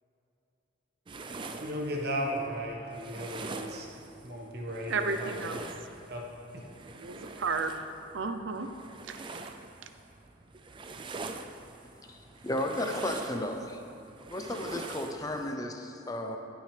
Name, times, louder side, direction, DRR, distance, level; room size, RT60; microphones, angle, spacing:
sound 1, 1.1-15.5, right 3 dB, 25° right, 0.4 m, -44 dB
voice 1, 1.6-3.9 4.2-5.4 6.1-6.2, equal, 50° right, -1 dB, 1.4 m, -35 dB
voice 2, 4.9-5.6 6.9-7.7 8.1-8.7 9.1-9.2, right 4 dB, 70° right, 8 dB, 0.6 m, -32 dB
voice 3, 12.4-13.8 14.3-16.4, left 1 dB, 20° left, 3 dB, 0.6 m, -33 dB
18.0 x 6.3 x 3.4 m, 2.9 s
head